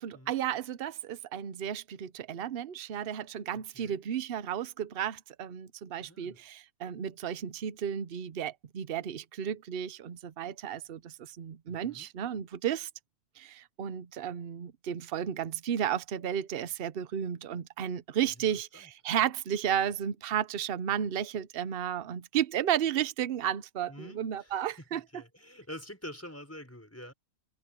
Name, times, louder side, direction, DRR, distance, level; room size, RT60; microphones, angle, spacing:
voice 1, 0.0-12.9 13.4-25.0, right 9 dB, 50° right, 0.9 m, -33 dB
voice 2, 3.5-4.0 6.0-6.4 11.7-12.1 18.4-18.5 18.7-18.9 23.9-24.6 24.9-27.1, left 1 dB, 10° left, 5.2 m, -47 dB
omnidirectional pair, 1.5 m